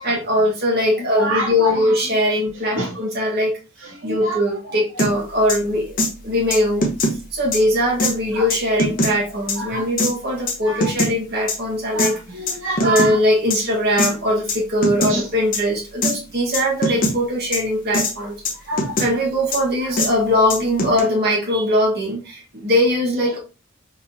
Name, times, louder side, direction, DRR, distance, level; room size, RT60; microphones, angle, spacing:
voice 1, 0.0-3.6 4.0-6.0 6.2-12.1 12.8-18.4 19.0-23.4, left 1 dB, 55° right, -2 dB, 1.5 m, -21 dB
voice 2, 1.2-2.0 2.3-2.4 2.8-3.0 3.8-5.0 8.3-8.5 9.2-9.9 10.6-10.9 11.9-13.2 13.6-13.7 15.1-15.3 16.9-17.0 18.7-19.0 19.8-19.9 23.3-23.4, right 1 dB, 75° right, -2 dB, 1.1 m, -28 dB
sound 1, 5.0-5.1 5.5-5.6 6.0-6.1 6.5-7.1 7.5-7.6 8.0-8.1 8.5-9.1 9.5-9.6 10.0-10.1 10.5-11.1 11.5-11.6 12.0-12.1 12.5-13.1 13.5-13.6 14.0-14.1 14.5-14.6 14.8-15.1 15.5-15.6 16.0-16.1 16.5-17.1 17.5-17.6 17.9-18.1 18.4-19.1 19.5-19.6 20.0-20.1 20.5-21.0, left 1 dB, 45° left, 0.9 m, -21 dB
4.3 x 3.5 x 2.7 m, 0.31 s
head